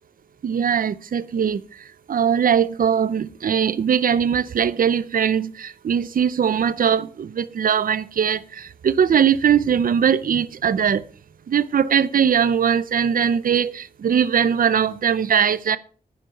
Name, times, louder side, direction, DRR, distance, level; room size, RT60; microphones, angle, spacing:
voice 1, 0.4-1.6 2.1-11.0 11.5-15.8, right 8 dB, 65° right, 0.7 m, -20 dB
11.0 x 10.0 x 5.7 m
wide cardioid pair, 155°, 16 cm